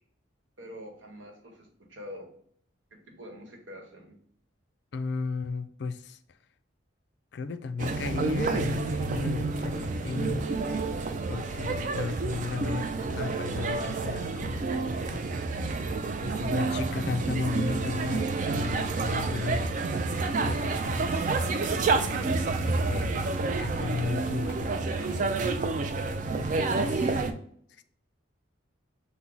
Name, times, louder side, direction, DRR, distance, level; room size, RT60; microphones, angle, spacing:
voice 1, 0.6-2.3 2.9-4.1, equal, 75° right, 2 dB, 1.0 m, -45 dB
voice 2, 4.9-6.2 7.3-10.4 11.3-15.2 16.2-19.7 20.4-21.3 22.6-23.3 23.6-25.4 26.3-27.2 27.8-27.9, left 4 dB, 60° left, 11 dB, 0.3 m, -35 dB
sound 1, 7.8-27.3, right 3 dB, 40° right, 0.3 m, -29 dB
5.8 x 2.1 x 3.8 m, 0.63 s
head